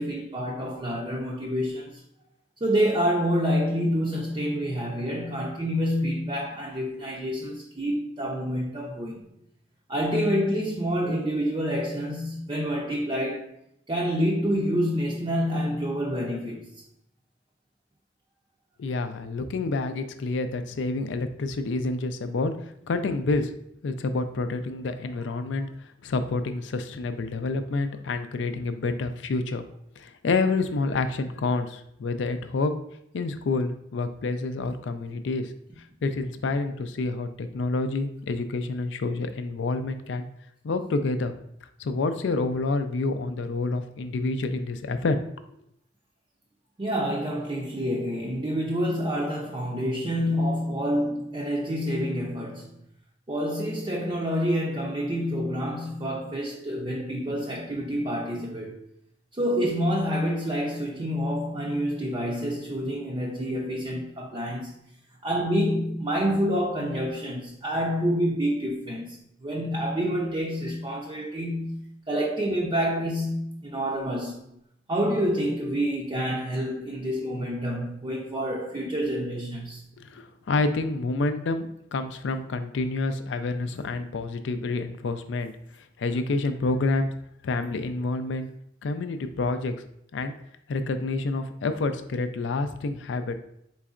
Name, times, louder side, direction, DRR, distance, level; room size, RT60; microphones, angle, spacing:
voice 1, 0.0-2.0 2.6-9.3 9.9-13.5 13.9-16.7 46.8-52.8 53.3-58.8 59.4-64.7 65.2-69.2 69.4-74.4 74.9-79.8 83.7-83.8, equal, 25° right, 0.5 m, -27 dB
voice 2, 18.8-22.5 22.8-23.5 23.8-25.7 26.0-29.6 30.0-32.8 33.1-35.5 36.0-40.3 40.6-41.3 41.8-45.2 80.0-85.5 86.0-87.1 87.4-88.5 88.8-89.7 90.1-90.3 90.7-93.3, left 3 dB, 75° left, 0.4 m, -28 dB
4.3 x 3.9 x 2.4 m
head